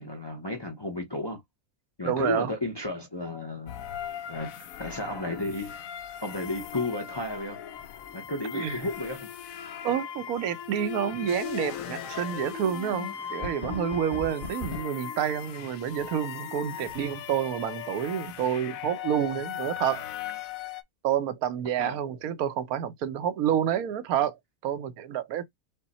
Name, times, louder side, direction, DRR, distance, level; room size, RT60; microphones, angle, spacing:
voice 1, 0.0-1.4 2.0-3.8 4.3-4.5 4.8-5.8 6.2-7.6 8.1-9.3 21.8-22.0, left 2 dB, 25° left, 0.6 m, -33 dB
voice 2, 2.0-2.5 8.5-8.9 9.8-20.1 21.0-25.4, right 9 dB, 85° right, 1.1 m, -29 dB
sound 1, 3.7-20.8, left 10 dB, 75° left, 1.0 m, -39 dB
sound 2, 11.3-14.8, left 4 dB, 45° left, 0.9 m, -39 dB
5.3 x 2.2 x 4.1 m
omnidirectional pair, 1.5 m